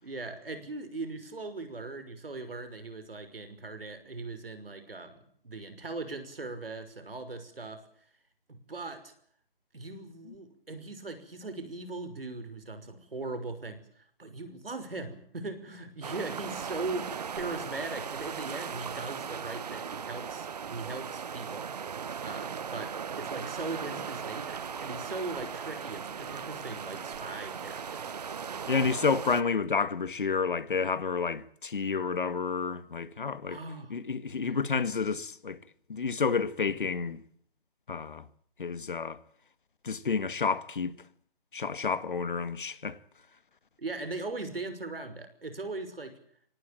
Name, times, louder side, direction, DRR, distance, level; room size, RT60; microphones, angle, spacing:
voice 1, 0.0-7.8 8.5-9.1 9.7-21.7 22.2-28.1 33.5-33.9 43.8-46.2, right 3 dB, 75° right, 5.8 m, -39 dB
sound 1, 16.0-29.4, right 6 dB, 45° right, 1.0 m, -38 dB
voice 2, 28.7-33.6 33.9-35.6 35.9-37.2 37.9-38.2 38.6-39.2 39.8-40.9 41.5-43.0, left 5 dB, 60° left, 1.9 m, -30 dB
25.5 x 18.0 x 9.1 m
figure-of-eight pair, 155°, 29 cm